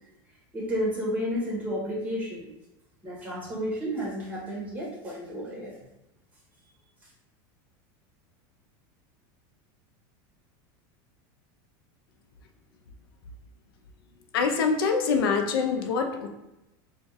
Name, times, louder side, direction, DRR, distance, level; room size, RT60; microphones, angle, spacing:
voice 1, 0.5-2.5 3.0-5.8, equal, 15° right, -5 dB, 1.4 m, -31 dB
voice 2, 14.3-16.3, left 5 dB, 85° left, 5 dB, 0.5 m, -25 dB
4.1 x 2.4 x 3.4 m, 0.93 s
supercardioid pair, 140°, 12 cm